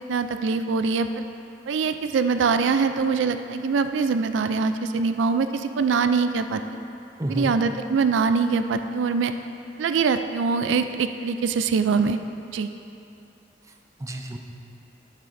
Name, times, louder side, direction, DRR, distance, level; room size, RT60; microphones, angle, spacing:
voice 1, 0.1-1.2 1.7-6.6 7.3-9.3 9.8-12.2 12.5-12.7, right 5 dB, 85° right, 9 dB, 0.4 m, -23 dB
voice 2, 7.2-7.5 13.7-14.4, right 1 dB, 15° right, 2 dB, 0.5 m, -31 dB
11.0 x 8.8 x 2.6 m, 2.7 s
head